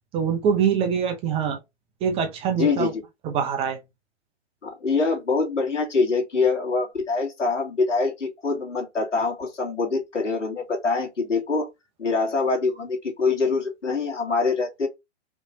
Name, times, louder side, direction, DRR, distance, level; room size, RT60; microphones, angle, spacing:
voice 1, 0.1-1.6 2.0-2.9 3.2-3.8, right 7 dB, 15° right, 0.6 m, -24 dB
voice 2, 2.5-3.0 4.6-11.7 12.0-14.9, left 4 dB, 85° left, 2.5 m, -24 dB
5.0 x 3.1 x 2.8 m
hypercardioid pair, 130°, 36 cm